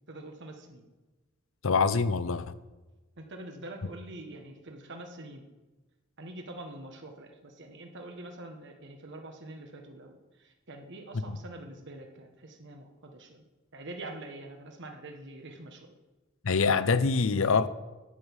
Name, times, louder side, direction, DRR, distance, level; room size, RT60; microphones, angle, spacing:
voice 1, 0.1-0.8 3.2-5.5 6.2-13.4 13.7-15.9, right 2 dB, 60° right, 1.4 m, -45 dB
voice 2, 1.6-2.5 11.1-11.4 16.4-17.7, left 4 dB, 70° left, 0.7 m, -25 dB
10.0 x 8.1 x 7.2 m
head